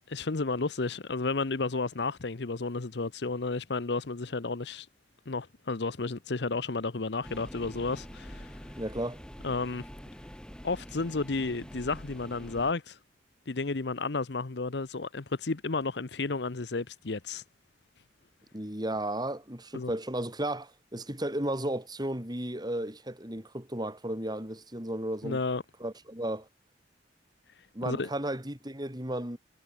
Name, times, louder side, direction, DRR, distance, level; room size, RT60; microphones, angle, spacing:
voice 1, 0.1-4.9 5.3-8.6 9.4-9.9 10.6-13.0 13.5-17.4 19.7-19.9 25.2-25.6 27.9-28.1, left 3 dB, 70° left, 0.9 m, -32 dB
sound 1, 7.2-12.7, equal, 5° left, 3.1 m, -45 dB
voice 2, 8.8-9.2 18.5-25.4 25.8-26.5 27.7-29.4, right 1 dB, 25° right, 5.6 m, -34 dB
head